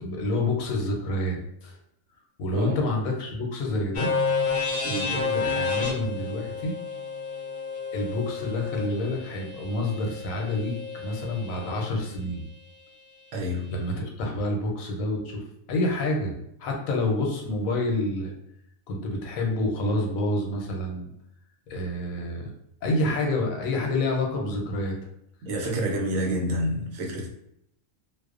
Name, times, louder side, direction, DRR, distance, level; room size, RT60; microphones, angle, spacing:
voice 1, 0.0-1.8 2.4-4.1 5.1-6.8 7.9-12.4 13.7-16.3 16.6-18.3 18.9-21.1 21.7-22.5 22.8-24.9, left 1 dB, 85° left, 1 dB, 1.0 m, -28 dB
sound 1, 3.9-11.8, left 5 dB, 55° left, 0.6 m, -30 dB
voice 2, 4.8-5.2 13.3-13.8 25.4-27.3, equal, 75° right, -1 dB, 1.0 m, -28 dB
2.5 x 2.0 x 2.4 m, 0.75 s
omnidirectional pair, 1.4 m